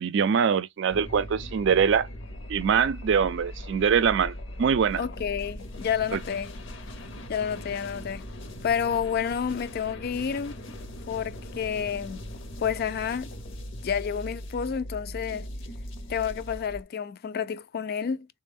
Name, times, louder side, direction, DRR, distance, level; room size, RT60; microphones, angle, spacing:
voice 1, 0.0-2.1 2.5-4.3 4.6-5.0 6.1-6.2, right 7 dB, 65° right, 0.4 m, -23 dB
sound 1, 0.9-16.8, left 1 dB, 70° left, 0.8 m, -40 dB
voice 2, 5.0-6.5 7.3-8.3 8.6-10.8 11.1-12.2 12.6-13.3 13.8-15.5 16.1-18.3, left 7 dB, 50° left, 0.4 m, -30 dB
4.0 x 2.2 x 3.4 m
head